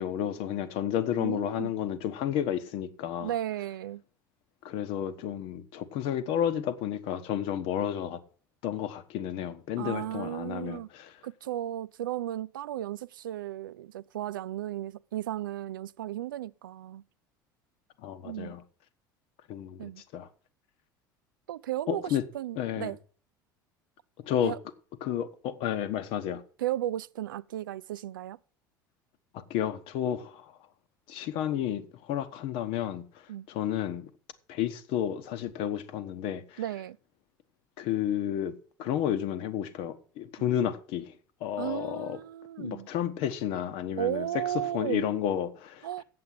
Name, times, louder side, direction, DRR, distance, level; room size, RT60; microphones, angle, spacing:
voice 1, 0.0-3.3 4.6-8.2 8.6-11.1 18.0-18.6 19.5-20.3 21.9-22.2 22.6-22.9 24.2-24.5 25.0-26.4 29.3-30.5 31.1-33.0 33.5-34.1 34.5-36.6 37.8-38.5 38.8-41.1 41.4-42.2 42.6-44.3 44.7-45.9, left 10 dB, 55° left, 1.0 m, -31 dB
voice 2, 1.2-1.7 3.2-4.0 9.8-10.9 11.2-17.0 18.2-18.5 19.8-20.0 21.5-23.0 24.4-24.6 26.6-28.4 33.3-33.5 36.6-37.0 40.4-40.5 41.6-42.9 44.0-45.1 45.8-46.0, right 12 dB, 75° right, 0.4 m, -35 dB
7.8 x 7.7 x 7.6 m
figure-of-eight pair, 65°, 11 cm